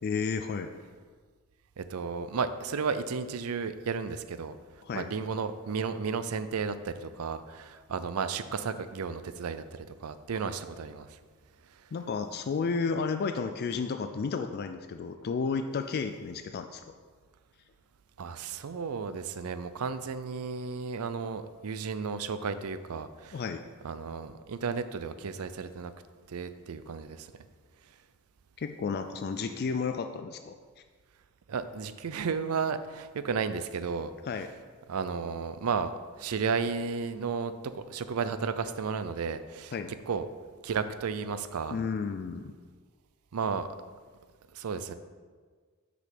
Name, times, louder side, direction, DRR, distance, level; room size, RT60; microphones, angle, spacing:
voice 1, 0.0-0.7 4.8-5.1 11.9-16.8 23.3-23.6 28.6-30.6 34.3-34.5 39.7-39.9 41.7-42.5, left 5 dB, 45° left, 7 dB, 0.3 m, -32 dB
voice 2, 1.8-4.6 4.9-11.2 11.7-11.9 18.2-23.4 23.8-25.9 26.3-27.3 31.5-34.1 34.9-39.7 40.1-40.3 40.6-41.8 43.3-43.8 44.5-44.9, right 5 dB, 80° right, 12 dB, 0.5 m, -33 dB
6.4 x 5.2 x 5.9 m, 1.5 s
head